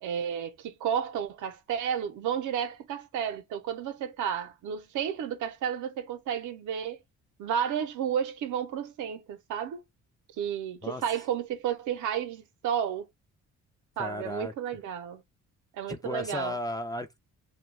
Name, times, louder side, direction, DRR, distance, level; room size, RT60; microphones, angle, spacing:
voice 1, 0.0-7.0 7.4-9.8 10.4-13.1 14.0-15.2 15.7-16.6, right 8 dB, 80° right, 0.7 m, -32 dB
voice 2, 14.0-14.5 15.9-17.2, left 1 dB, 15° left, 0.4 m, -34 dB
2.3 x 2.2 x 3.2 m
cardioid pair, 90°, 30 cm